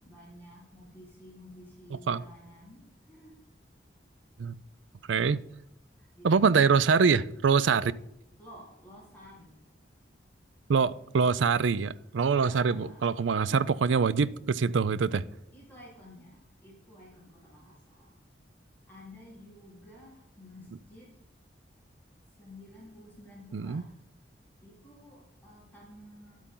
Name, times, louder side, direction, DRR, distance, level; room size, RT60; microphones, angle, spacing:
voice 1, 0.0-3.3 6.2-6.7 7.7-7.9 8.4-9.5 12.3-13.1 15.5-18.1 18.9-21.1 22.4-23.9 24.6-26.4, left 1 dB, 10° left, 4.0 m, -52 dB
voice 2, 5.1-5.4 6.2-7.9 10.7-15.2 23.5-23.8, right 5 dB, 85° right, 0.4 m, -24 dB
12.0 x 8.3 x 3.8 m
head